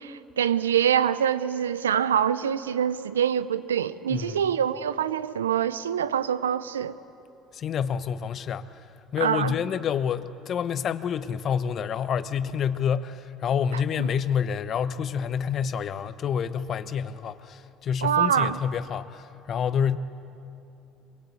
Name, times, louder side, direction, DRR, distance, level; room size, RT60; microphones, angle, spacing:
voice 1, 0.0-7.0 9.2-9.5 14.0-14.1 18.0-18.6, right 9 dB, 85° right, 0.6 m, -25 dB
voice 2, 4.1-4.4 7.5-8.9 9.1-20.0, left 7 dB, 50° left, 1.0 m, -28 dB
23.5 x 23.0 x 8.4 m
hypercardioid pair, 65°, 0 cm